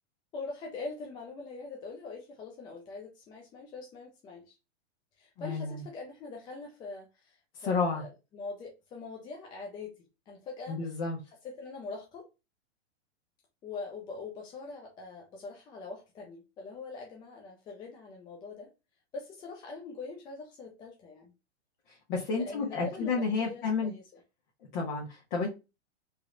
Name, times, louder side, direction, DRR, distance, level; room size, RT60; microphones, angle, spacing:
voice 1, 0.3-4.5 5.2-9.9 10.3-10.9 11.4-12.3 13.6-18.7 19.1-21.3 22.3-24.2, left 3 dB, 15° left, 0.3 m, -43 dB
voice 2, 5.4-5.8 7.6-8.0 10.7-11.2 22.1-23.9 24.7-25.5, left 4 dB, 45° left, 1.1 m, -31 dB
3.1 x 3.0 x 2.5 m
hypercardioid pair, 130°, 35 cm